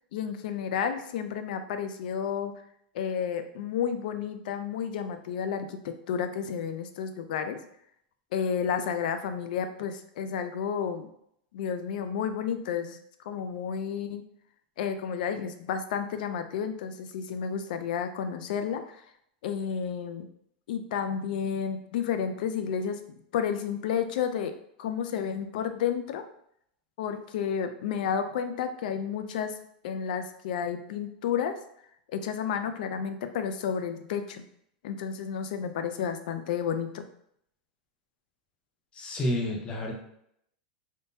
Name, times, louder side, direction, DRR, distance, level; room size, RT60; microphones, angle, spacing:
voice 1, 0.1-2.5 2.9-7.6 8.3-11.1 11.5-13.0 13.3-14.2 14.8-19.0 19.4-20.3 20.7-23.0 23.3-24.5 24.8-26.2 27.0-29.5 29.8-31.6 32.1-34.4 34.8-37.1, left 7 dB, 70° left, 8 dB, 0.4 m, -31 dB
voice 2, 38.9-40.0, left 1 dB, 20° left, 0 dB, 0.7 m, -30 dB
3.6 x 2.6 x 2.7 m, 0.71 s
supercardioid pair, 145°, 5 cm